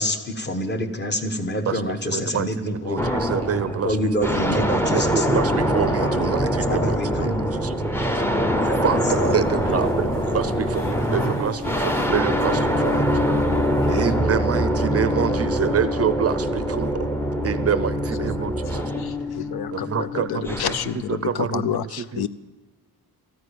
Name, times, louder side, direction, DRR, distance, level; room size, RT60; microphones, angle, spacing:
voice 1, 0.0-3.2 3.8-5.4 6.0-6.2 6.7-7.5 8.7-9.4, left 1 dB, 30° left, 6 dB, 1.2 m, -27 dB
voice 2, 2.1-8.1 8.8-13.0 13.9-17.1 17.4-18.8 19.7-22.3, right 8 dB, 40° right, 13 dB, 0.5 m, -27 dB
sound 1, 3.0-21.0, equal, 5° left, 0.6 m, -24 dB
sound 2, 8.6-14.1, left 3 dB, 60° left, 2.4 m, -39 dB
voice 3, 18.7-22.3, left 10 dB, 75° left, 15 dB, 0.6 m, -29 dB
14.0 x 9.5 x 8.6 m, 1.2 s
wide cardioid pair, 175°, 38 cm